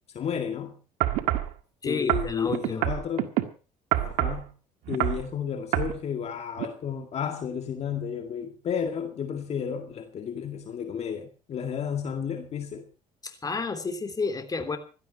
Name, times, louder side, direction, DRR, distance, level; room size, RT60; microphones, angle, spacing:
voice 1, 0.1-0.8 1.8-3.3 4.0-4.5 4.9-12.9, left 7 dB, 50° left, 2.0 m, -32 dB
sound 1, 1.0-1.5 2.1-3.4 3.9-4.4 4.9-5.2 5.7-5.9 6.6-6.7, right 14 dB, 85° right, 1.8 m, -26 dB
voice 2, 1.8-2.9 4.0-4.1 13.2-14.8, left 4 dB, 25° left, 3.2 m, -31 dB
16.5 x 13.0 x 5.7 m
cardioid pair, 100°, 14 cm